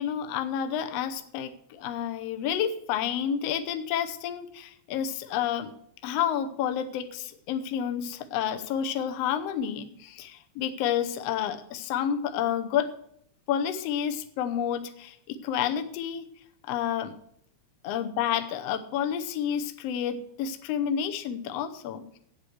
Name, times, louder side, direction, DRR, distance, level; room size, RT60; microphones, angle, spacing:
voice 1, 0.0-5.7 6.0-12.9 13.5-16.3 16.7-17.1 17.8-22.2, left 9 dB, 65° left, 7 dB, 1.8 m, -30 dB
8.4 x 8.2 x 7.8 m, 0.69 s
omnidirectional pair, 3.5 m